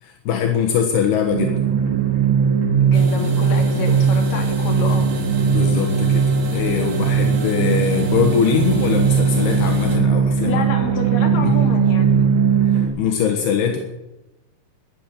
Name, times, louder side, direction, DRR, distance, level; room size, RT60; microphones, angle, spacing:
voice 1, 0.0-1.6 5.4-10.6 11.3-11.5 12.7-13.8, left 8 dB, 80° left, 3 dB, 3.4 m, -22 dB
sound 1, 1.3-12.9, right 6 dB, 90° right, 5.6 m, -18 dB
voice 2, 2.8-5.1 10.4-12.3, left 4 dB, 60° left, 2 dB, 4.0 m, -28 dB
sound 2, 2.9-10.0, right 3 dB, 45° right, 1.7 m, -33 dB
13.0 x 10.5 x 9.8 m, 0.99 s
omnidirectional pair, 4.6 m